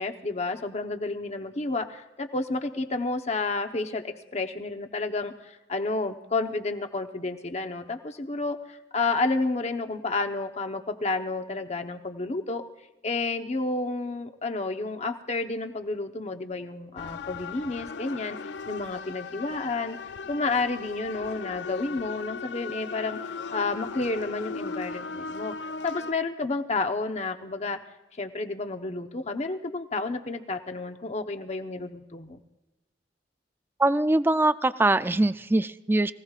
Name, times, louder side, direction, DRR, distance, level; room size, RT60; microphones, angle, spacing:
voice 1, 0.0-12.6 13.0-18.4 18.7-20.0 20.3-27.8 28.2-32.4, left 3 dB, 40° left, 6 dB, 0.9 m, -30 dB
sound 1, 17.0-26.1, left 5 dB, 70° left, 0.4 m, -37 dB
voice 2, 33.8-36.1, right 2 dB, 10° right, 12 dB, 0.4 m, -22 dB
23.5 x 16.5 x 2.4 m, 1.1 s
head